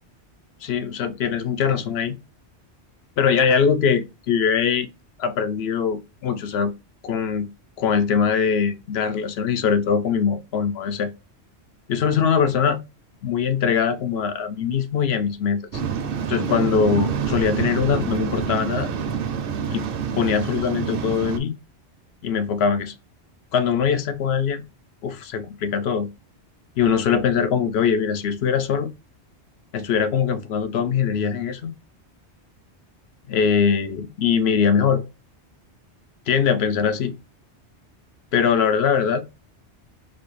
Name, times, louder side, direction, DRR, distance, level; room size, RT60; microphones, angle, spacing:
voice 1, 0.6-2.1 3.2-4.9 5.2-6.7 7.0-7.5 7.8-11.1 11.9-12.8 13.2-15.8 16.3-18.9 19.7-19.9 20.1-21.5 22.2-22.9 23.5-24.6 25.0-26.1 26.8-28.9 29.7-31.7 33.3-35.0 36.3-37.1 38.3-39.2, left 7 dB, 70° left, 0.8 m, -22 dB
Waves surf, 15.7-21.4, right 7 dB, 60° right, 0.7 m, -27 dB
4.0 x 2.2 x 3.1 m
omnidirectional pair, 1.2 m